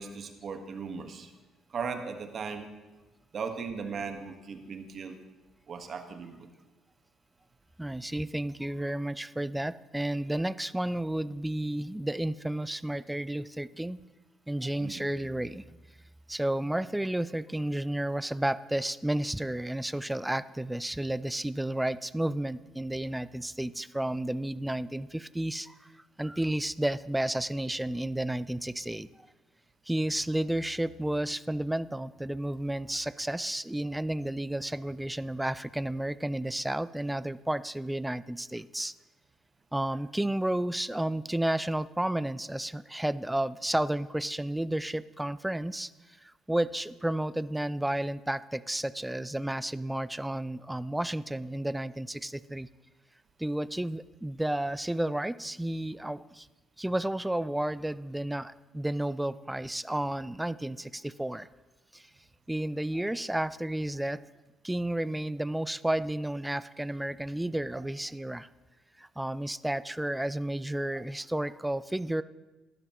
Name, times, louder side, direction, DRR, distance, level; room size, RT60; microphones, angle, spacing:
voice 1, 0.0-1.3 1.7-2.7 3.3-5.2 5.7-6.5 14.8-15.0 39.9-40.0 70.9-71.0, right 5 dB, 50° right, 6 dB, 1.4 m, -38 dB
voice 2, 7.8-14.0 14.5-15.6 16.3-25.9 26.2-29.1 29.9-38.9 39.7-45.9 46.2-52.7 53.4-56.5 56.8-61.5 61.9-62.1 62.5-64.2 64.6-68.5 69.0-72.2, right 1 dB, 10° right, 17 dB, 0.4 m, -32 dB
15.5 x 12.0 x 3.0 m, 1.2 s
hypercardioid pair, 55°, 0 cm